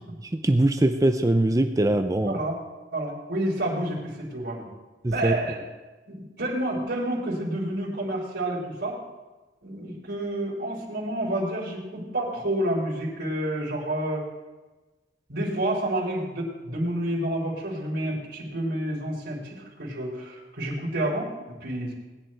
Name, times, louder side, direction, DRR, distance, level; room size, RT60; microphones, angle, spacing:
voice 1, 0.3-2.4 5.0-5.4, right 1 dB, 20° right, 8 dB, 0.5 m, -22 dB
voice 2, 2.2-2.6 2.9-4.7 5.1-5.6 6.1-9.0 9.6-14.2 15.3-21.9, right 1 dB, 75° right, -9 dB, 4.4 m, -29 dB
20.5 x 10.0 x 4.5 m, 1.2 s
head